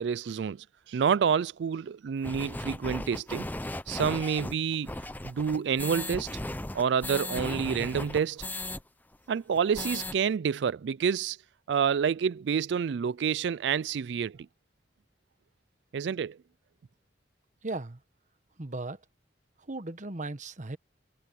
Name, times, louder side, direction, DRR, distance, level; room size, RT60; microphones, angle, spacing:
voice 1, 0.0-3.5 3.9-5.0 5.2-6.3 6.7-8.4 9.3-11.4 11.7-14.5 15.9-16.4, right 7 dB, 70° right, 0.4 m, -28 dB
sound 1, 2.2-8.8 9.1-9.2 9.5-10.1, left 1 dB, 10° left, 0.8 m, -36 dB
voice 2, 17.6-18.0 18.6-19.0 19.7-20.8, right 2 dB, 45° right, 1.2 m, -36 dB
head